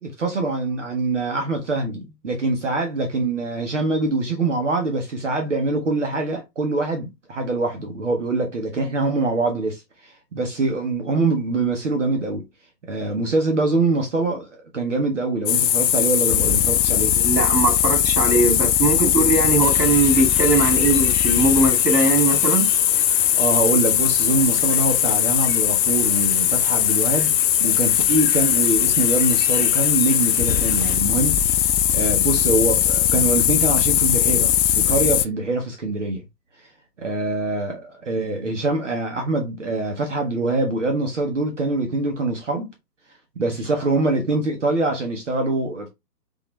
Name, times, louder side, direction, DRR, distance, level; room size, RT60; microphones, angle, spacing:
voice 1, 0.0-12.4 12.9-17.2 23.3-27.3 27.6-36.2 37.0-42.7 43.4-45.9, right 3 dB, 50° right, 0.8 m, -24 dB
sound 1, 15.5-35.3, left 11 dB, 80° left, 0.5 m, -19 dB
voice 2, 17.2-22.7, right 3 dB, 80° right, 2.0 m, -20 dB
sound 2, 19.6-31.0, left 4 dB, 40° left, 1.3 m, -40 dB
3.9 x 3.0 x 3.0 m
hypercardioid pair, 170°, 49 cm